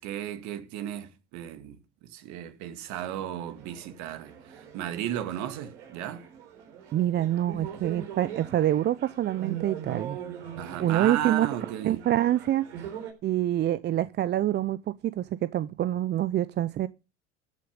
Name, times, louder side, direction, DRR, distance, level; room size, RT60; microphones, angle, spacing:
voice 1, 0.0-6.3 10.6-12.0, right 11 dB, 55° right, 2.2 m, -35 dB
sound 1, 2.9-13.1, right 8 dB, 75° right, 4.2 m, -42 dB
voice 2, 6.9-10.2 10.8-11.5 11.8-12.7 13.2-16.9, right 12 dB, 30° right, 0.6 m, -26 dB
14.0 x 8.8 x 5.2 m
hypercardioid pair, 75°, 33 cm